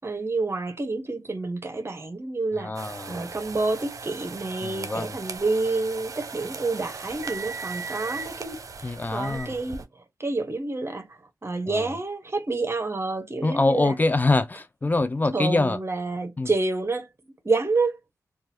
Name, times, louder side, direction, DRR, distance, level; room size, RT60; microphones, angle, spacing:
voice 1, 0.0-13.9 15.3-17.1 17.4-18.0, right 3 dB, 40° right, 1.0 m, -29 dB
voice 2, 2.6-3.2 4.6-5.2 8.8-9.5 11.7-11.9 13.4-15.8 16.4-16.5, left 2 dB, 25° left, 0.4 m, -24 dB
sound 1, 2.7-9.8, right 4 dB, 60° right, 0.5 m, -38 dB
2.8 x 2.4 x 2.7 m
cardioid pair, 40°, 6 cm